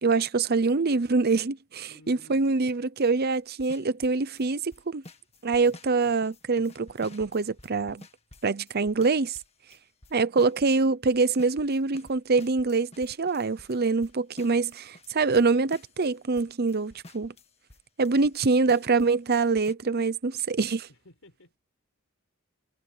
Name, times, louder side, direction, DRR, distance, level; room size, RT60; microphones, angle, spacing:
voice 1, 0.0-5.0 5.4-8.0 8.4-9.4 10.1-17.3 18.0-20.9, right 4 dB, 50° right, 0.8 m, -25 dB
voice 2, 1.9-2.4 20.9-21.6, left 1 dB, 75° left, 5.8 m, -54 dB
sound 1, 3.3-4.5 4.7-10.8 11.1-18.4 18.7-19.7, left 2 dB, 30° left, 1.8 m, -52 dB
head